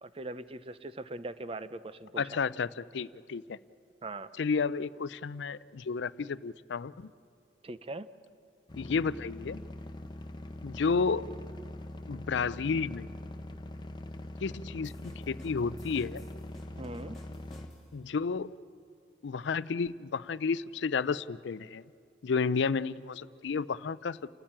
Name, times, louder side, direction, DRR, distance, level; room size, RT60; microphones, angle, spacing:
voice 1, 0.0-2.4 4.0-4.3 7.6-8.1 16.8-17.2, right 2 dB, 30° right, 0.6 m, -41 dB
voice 2, 2.2-3.6 4.4-7.1 8.8-9.6 10.6-11.3 12.1-13.1 14.4-16.2 17.9-18.5 19.2-21.8 22.2-24.3, left 5 dB, 70° left, 0.5 m, -32 dB
sound 1, 8.7-17.7, left 1 dB, 25° left, 0.8 m, -43 dB
sound 2, 14.8-18.1, left 1 dB, ahead, 2.7 m, -57 dB
30.0 x 13.5 x 8.8 m
head